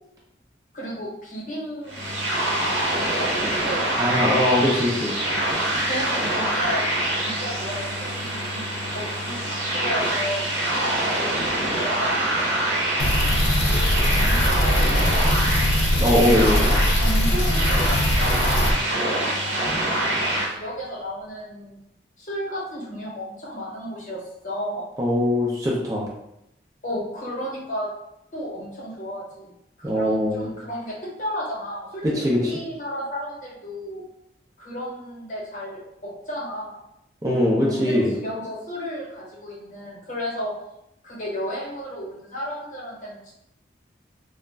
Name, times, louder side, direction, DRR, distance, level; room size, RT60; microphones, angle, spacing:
voice 1, 0.7-2.0 2.9-4.5 5.9-6.8 7.2-11.0 11.8-12.2 13.5-15.4 17.0-18.3 18.6-21.8 22.2-24.9 26.8-27.9 28.3-29.5 29.8-34.0 34.6-36.8 37.6-40.5 41.0-43.3, equal, 45° left, -5 dB, 0.9 m, -33 dB
sound 1, 1.9-20.5, right 1 dB, 90° right, 0.8 m, -25 dB
voice 2, 4.0-5.1 16.0-16.7 25.0-26.1 29.8-30.5 32.0-32.5 37.2-38.2, left 1 dB, 20° right, -5 dB, 0.4 m, -21 dB
sound 2, 13.0-18.7, left 1 dB, 80° left, 0.4 m, -21 dB
2.4 x 2.0 x 3.2 m, 0.82 s
head